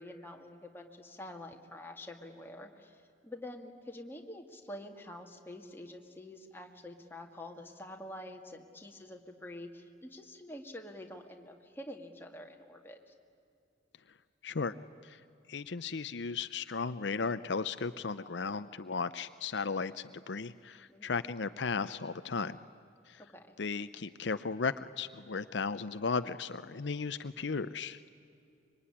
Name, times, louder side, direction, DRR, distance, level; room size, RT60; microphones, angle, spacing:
voice 1, 0.0-13.1 20.9-21.2 23.3-23.6, left 1 dB, 10° left, 2 dB, 2.1 m, -47 dB
voice 2, 14.4-14.7 15.0-15.2 15.5-22.6 23.1-23.2 23.6-28.1, left 4 dB, 70° left, 12 dB, 0.7 m, -35 dB
25.5 x 23.5 x 9.9 m, 2.6 s
head